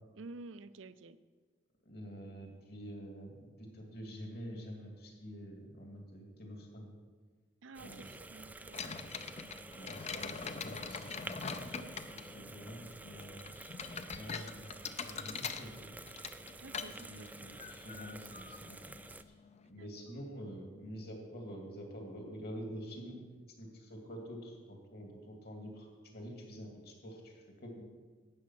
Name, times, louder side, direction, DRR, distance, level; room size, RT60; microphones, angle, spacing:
voice 1, 0.2-1.2 7.6-8.9 11.5-12.0 16.6-17.3 19.8-20.3, right 3 dB, 75° right, 14 dB, 0.6 m, -51 dB
voice 2, 1.8-6.9 7.8-8.1 9.7-11.1 12.3-13.6 14.1-15.9 17.1-19.3 19.7-23.2 23.6-25.9 26.1-27.8, equal, 55° left, 1 dB, 2.5 m, -47 dB
sound 1, 7.7-19.2, right 2 dB, 10° right, 0.3 m, -50 dB
sound 2, 8.7-19.7, left 5 dB, 35° left, 0.6 m, -44 dB
12.0 x 8.6 x 5.8 m, 1.4 s
head